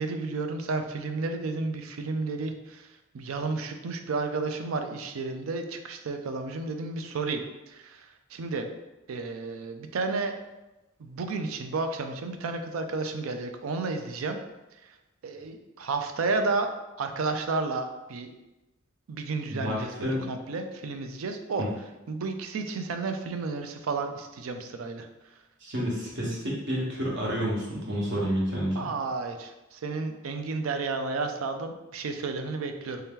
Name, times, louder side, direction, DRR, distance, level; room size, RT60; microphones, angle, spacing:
voice 1, 0.0-2.9 3.1-7.4 7.7-8.7 9.1-10.4 11.0-14.4 15.2-16.7 17.0-18.3 19.1-21.6 22.1-25.1 28.8-33.0, right 3 dB, 85° right, 6 dB, 0.4 m, -32 dB
voice 2, 19.5-20.3 21.6-21.7 25.6-28.8, equal, 60° right, -4 dB, 1.1 m, -29 dB
3.3 x 2.8 x 3.6 m, 1.0 s
head